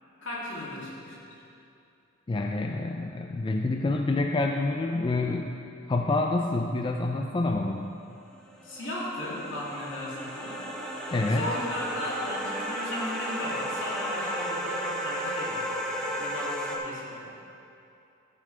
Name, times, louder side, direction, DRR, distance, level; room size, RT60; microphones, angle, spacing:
voice 1, 0.2-1.3 8.6-10.6 11.4-17.3, left 1 dB, 70° left, -6 dB, 2.6 m, -36 dB
voice 2, 2.3-5.5 5.9-7.9 11.1-11.5, left 2 dB, 25° left, 2 dB, 0.4 m, -27 dB
sound 1, 8.3-16.8, equal, 5° left, 1.1 m, -34 dB
14.0 x 8.6 x 3.3 m, 2.7 s
head